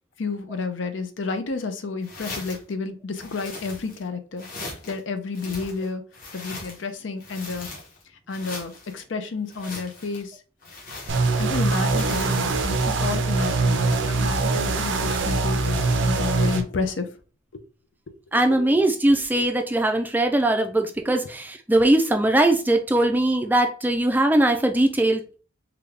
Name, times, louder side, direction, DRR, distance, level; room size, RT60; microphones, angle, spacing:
voice 1, 0.2-4.5 4.9-6.0 6.3-7.7 8.3-10.4 11.4-17.1 17.5-17.6 18.5-18.7, left 4 dB, 75° left, 8 dB, 0.6 m, -30 dB
sound 1, 2.0-2.7 3.2-4.1 4.4-5.0 5.3-6.9 7.2-8.0 8.3-8.9 9.5-10.2 10.6-11.6 12.0-12.6, left 2 dB, 45° left, 1.2 m, -39 dB
sound 2, 11.1-16.6, right 3 dB, 70° right, 0.5 m, -23 dB
voice 2, 18.3-25.4, right 1 dB, 10° right, 5 dB, 0.3 m, -20 dB
3.8 x 2.2 x 3.3 m, 0.37 s
head